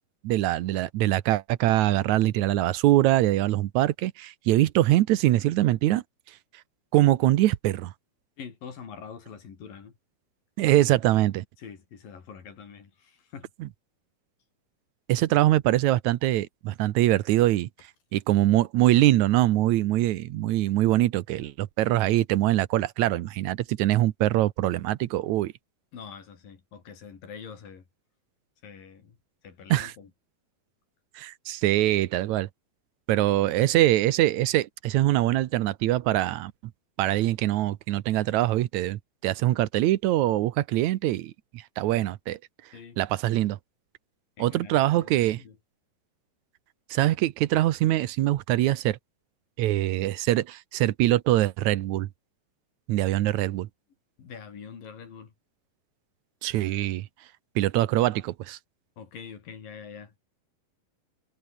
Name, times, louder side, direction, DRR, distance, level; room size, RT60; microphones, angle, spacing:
voice 1, 0.2-6.0 6.9-7.9 10.6-11.5 13.6-13.7 15.1-17.7 18.1-25.5 29.7-29.9 31.2-32.5 33.1-36.5 37.0-42.4 43.0-43.6 44.4-45.4 46.9-49.0 49.6-52.1 52.9-53.7 56.4-57.1 57.6-58.6, right 15 dB, 75° right, 1.8 m, -23 dB
voice 2, 8.4-10.0 11.6-13.5 15.3-15.4 25.9-27.8 28.6-29.2 29.4-30.1 42.7-43.0 44.4-45.6 54.2-55.3 59.0-60.1, left 6 dB, 65° left, 5.2 m, -44 dB
omnidirectional pair, 4.3 m